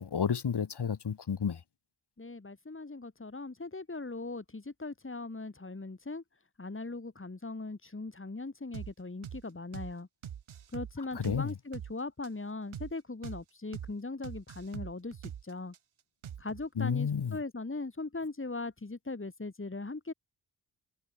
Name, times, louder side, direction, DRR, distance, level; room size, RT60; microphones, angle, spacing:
voice 1, 0.0-1.6 11.2-11.5 16.8-17.4, left 7 dB, 55° left, 2.1 m, -31 dB
voice 2, 2.2-6.2 6.6-10.1 10.7-15.2 15.4-15.7 16.4-20.1, left 3 dB, 25° left, 4.0 m, -39 dB
sound 1, 8.7-8.9 9.2-9.4 9.7-9.9 10.2-11.9 12.2-12.3 12.7-12.9 13.2-13.4 13.7-13.9 14.2-15.8 16.2-16.7, right 9 dB, 80° right, 2.8 m, -43 dB
cardioid pair, 55°, 48 cm